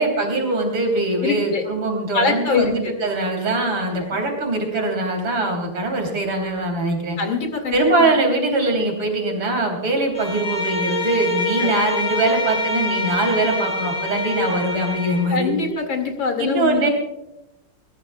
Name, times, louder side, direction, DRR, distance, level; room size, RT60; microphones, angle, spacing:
voice 1, 0.0-7.2 7.7-15.6 16.4-16.9, right 2 dB, 90° right, 2 dB, 4.2 m, -22 dB
voice 2, 1.2-1.7 2.1-2.9 4.1-4.2 7.2-8.1 11.6-11.7 15.3-16.9, left 5 dB, 75° left, 4 dB, 3.1 m, -24 dB
Bowed string instrument, 10.1-15.3, left 1 dB, 40° left, 2.5 m, -25 dB
21.0 x 20.0 x 2.4 m, 0.92 s
omnidirectional pair, 2.2 m